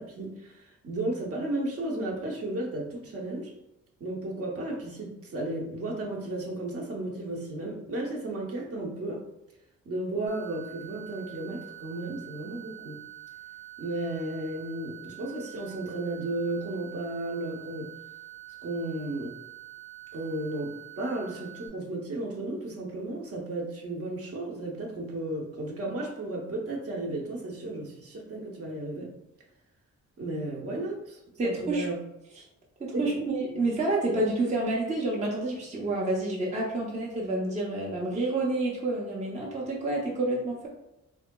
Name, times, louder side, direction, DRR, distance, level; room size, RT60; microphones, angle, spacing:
voice 1, 0.0-3.5 4.0-9.2 9.8-13.0 13.8-17.9 18.6-19.3 20.1-20.7 21.0-29.1 30.2-32.0 32.9-33.0, right 2 dB, 50° right, -1 dB, 0.8 m, -34 dB
sound 1, 10.3-21.7, right 15 dB, 75° right, 1.1 m, -46 dB
voice 2, 31.4-31.9 32.8-40.7, right 2 dB, 25° right, -3 dB, 0.6 m, -29 dB
3.7 x 3.0 x 2.2 m, 0.92 s
wide cardioid pair, 150°, 29 cm